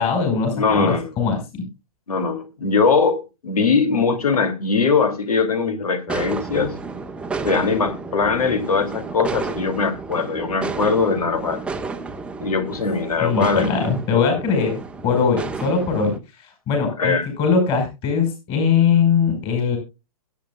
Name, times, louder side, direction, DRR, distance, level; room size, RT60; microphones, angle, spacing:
voice 1, 0.0-1.4 13.2-19.8, left 6 dB, 30° left, 5.2 m, -21 dB
voice 2, 0.5-1.1 2.1-6.7 7.4-11.6 12.4-13.9 17.0-17.3, left 5 dB, 85° left, 2.6 m, -21 dB
sound 1, 6.1-16.2, right 4 dB, 5° right, 0.8 m, -31 dB
22.0 x 8.5 x 2.3 m
hypercardioid pair, 135°, 19 cm